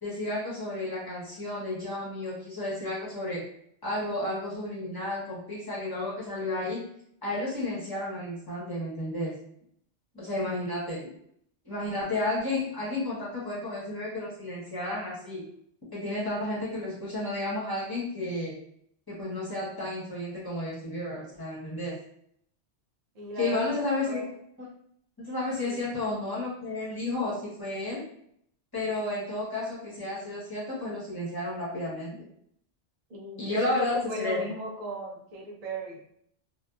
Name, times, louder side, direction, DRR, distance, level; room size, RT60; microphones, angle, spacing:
voice 1, 0.0-3.4 3.8-6.8 7.2-9.3 10.1-11.1 11.6-15.4 15.9-18.6 19.1-22.0 23.4-24.2 24.6-24.7 25.2-28.0 28.7-32.3 33.4-34.4, left 2 dB, 20° left, -7 dB, 0.9 m, -32 dB
voice 2, 23.2-23.7 24.1-24.3 25.6-25.9 33.1-36.2, right 1 dB, 55° right, -2 dB, 0.4 m, -37 dB
2.7 x 2.3 x 2.3 m, 0.69 s
omnidirectional pair, 1.2 m